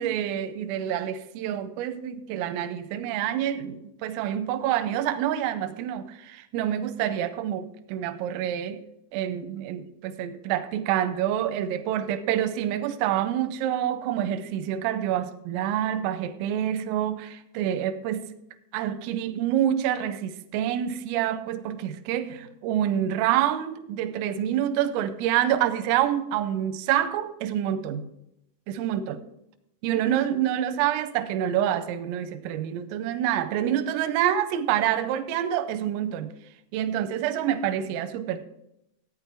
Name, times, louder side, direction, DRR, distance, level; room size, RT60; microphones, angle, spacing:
voice 1, 0.0-8.8 9.1-18.3 18.7-28.1 28.7-29.2 29.8-36.3 36.7-38.4, right 11 dB, 90° right, 3.3 m, -27 dB
14.5 x 9.1 x 3.4 m
omnidirectional pair, 5.8 m